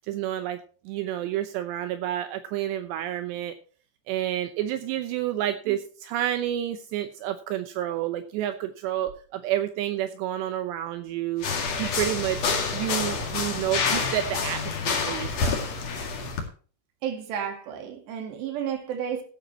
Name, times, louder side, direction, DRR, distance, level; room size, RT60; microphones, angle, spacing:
voice 1, 0.1-0.6 0.9-3.5 4.1-11.5 11.8-15.6, right 12 dB, 85° right, 2.5 m, -29 dB
sound 1, 11.4-16.4, left 5 dB, 50° left, 2.3 m, -28 dB
voice 2, 17.0-19.2, right 8 dB, 60° right, 3.9 m, -32 dB
16.0 x 10.0 x 2.9 m
omnidirectional pair, 6.0 m